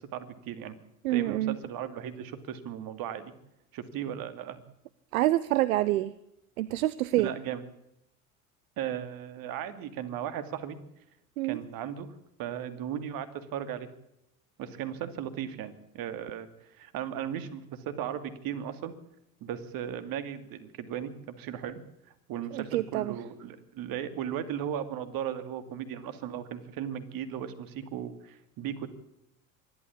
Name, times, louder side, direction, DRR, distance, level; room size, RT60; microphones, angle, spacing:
voice 1, 0.1-0.8 1.1-3.3 3.7-4.6 7.2-7.6 8.8-10.8 11.4-12.1 12.4-13.9 14.6-16.5 16.7-18.9 19.4-21.8 22.3-28.9, right 9 dB, 55° right, 11 dB, 2.5 m, -36 dB
voice 2, 1.0-1.6 5.1-6.1 6.6-7.3 11.4-11.6 22.5-23.2, right 15 dB, 75° right, 19 dB, 0.7 m, -27 dB
25.0 x 12.0 x 8.5 m, 0.81 s
hypercardioid pair, 75°, 42 cm